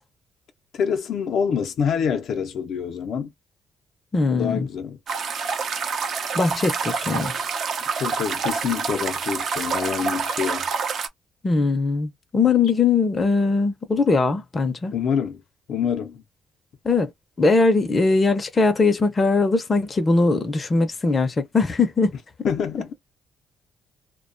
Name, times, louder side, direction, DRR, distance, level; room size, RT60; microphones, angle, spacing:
voice 1, 0.7-3.3 4.3-5.0 8.0-10.7 14.9-15.4 15.7-16.2 22.4-22.9, left 7 dB, 70° left, 0.6 m, -26 dB
voice 2, 4.1-4.7 6.3-7.3 11.4-14.9 16.8-17.1 17.4-22.1, left 3 dB, 30° left, 0.6 m, -20 dB
sound 1, 5.1-11.1, right 5 dB, 60° right, 0.6 m, -27 dB
2.4 x 2.2 x 2.5 m
cardioid pair, 90°, 0 cm